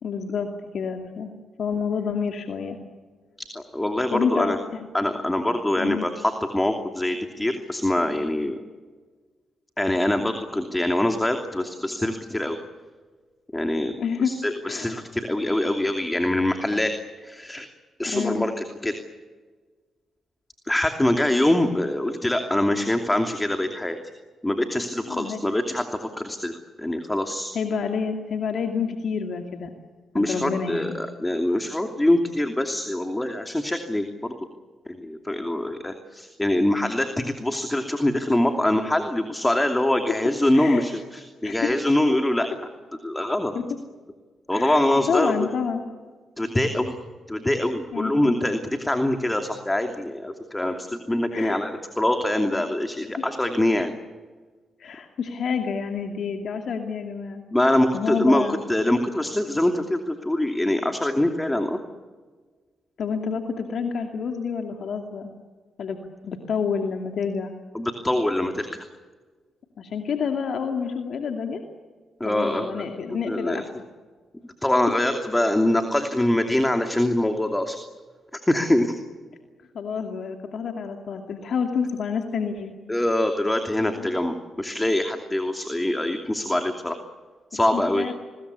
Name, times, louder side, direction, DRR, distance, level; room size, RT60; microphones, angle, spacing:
voice 1, 0.0-0.5 0.7-1.3 1.6-2.8 4.1-4.9 5.8-6.1 14.0-14.3 14.6-15.0 18.1-18.5 25.1-25.4 27.5-29.7 30.1-31.0 40.5-40.8 41.4-41.7 43.5-43.6 44.5-45.8 47.9-48.4 50.7-50.8 51.3-51.6 54.8-57.4 57.9-58.6 63.0-65.3 65.8-66.0 66.2-67.5 69.8-71.6 72.2-73.7 74.9-75.0 79.7-82.7 83.9-84.1 87.5-88.2, left 6 dB, 65° left, 4 dB, 2.5 m, -28 dB
voice 2, 3.5-4.6 4.9-8.5 9.8-12.6 13.5-13.9 14.2-16.9 17.2-17.7 18.0-18.9 20.7-24.0 24.4-26.5 26.8-27.5 30.1-34.3 34.9-42.5 43.0-43.5 44.5-45.3 46.4-47.0 47.3-53.9 57.5-61.8 67.7-68.8 72.2-72.9 73.3-73.6 74.6-77.8 78.3-79.0 82.9-87.0 87.5-88.0, left 1 dB, 15° left, 5 dB, 2.8 m, -24 dB
29.5 x 21.5 x 8.4 m, 1.5 s
supercardioid pair, 55°, 0 cm